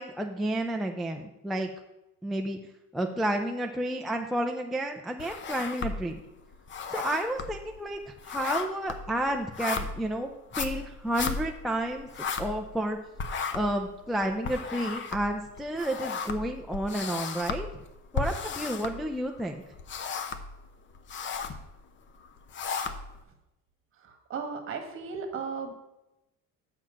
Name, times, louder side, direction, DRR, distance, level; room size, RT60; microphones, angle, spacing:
voice 1, 0.0-1.7 2.2-2.6 2.9-6.2 6.9-8.0 8.3-12.1 12.4-13.0 13.5-17.7 18.1-19.6, right 1 dB, ahead, 2 dB, 0.4 m, -31 dB
sound 1, 5.2-6.2 6.5-12.9 13.2-19.4 19.7-20.6 20.9-21.6 22.2-23.2, left 5 dB, 35° left, 0.7 m, -35 dB
voice 2, 24.3-25.7, right 5 dB, 40° right, 5 dB, 1.5 m, -35 dB
6.9 x 5.9 x 7.3 m, 0.92 s
cardioid pair, 160°, 33 cm